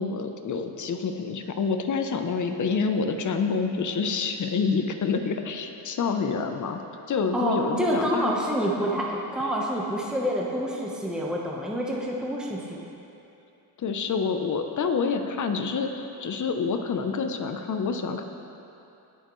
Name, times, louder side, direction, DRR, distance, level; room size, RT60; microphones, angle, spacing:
voice 1, 0.0-6.8 7.1-8.3 13.8-18.2, left 5 dB, 45° left, 6 dB, 0.8 m, -27 dB
voice 2, 7.3-12.8, equal, ahead, -3 dB, 1.1 m, -27 dB
20.0 x 6.7 x 3.2 m, 2.8 s
cardioid pair, 125°, 41 cm